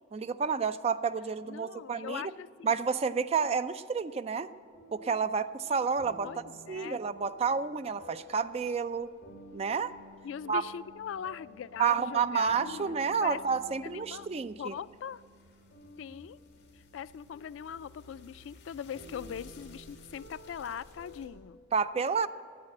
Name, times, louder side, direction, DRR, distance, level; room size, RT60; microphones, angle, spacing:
voice 1, 0.1-2.2 2.6-4.5 4.9-6.3 6.7-9.1 9.5-10.0 10.5-10.6 11.8-14.7 21.7-22.3, right 6 dB, 30° right, 12 dB, 0.3 m, -30 dB
voice 2, 1.4-2.7 6.2-7.0 10.2-13.0 13.2-14.3 14.6-15.2 16.0-16.4 16.9-21.6, left 8 dB, 75° left, 18 dB, 0.3 m, -41 dB
sound 1, 4.0-21.3, left 1 dB, 60° left, 2.2 m, -53 dB
10.5 x 8.9 x 8.7 m, 2.4 s
head